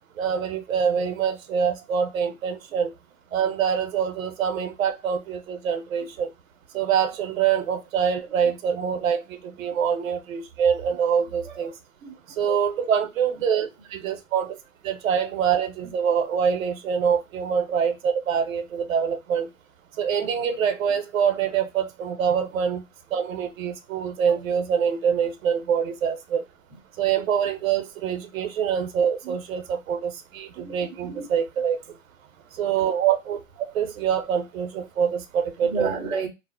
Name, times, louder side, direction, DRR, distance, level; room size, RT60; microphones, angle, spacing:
voice 1, 0.2-2.9 3.3-6.3 6.7-11.7 12.4-14.6 14.8-19.5 20.0-22.8 23.1-26.4 27.0-31.8 32.6-33.4 33.7-35.9, right 7 dB, 80° right, 0.7 m, -25 dB
voice 2, 12.0-12.6 15.8-15.9 24.2-24.4 29.2-29.4 30.5-31.3 33.6-33.7 35.6-36.3, right 4 dB, 10° right, 0.5 m, -33 dB
2.4 x 2.0 x 3.5 m
hypercardioid pair, 135°, 40 cm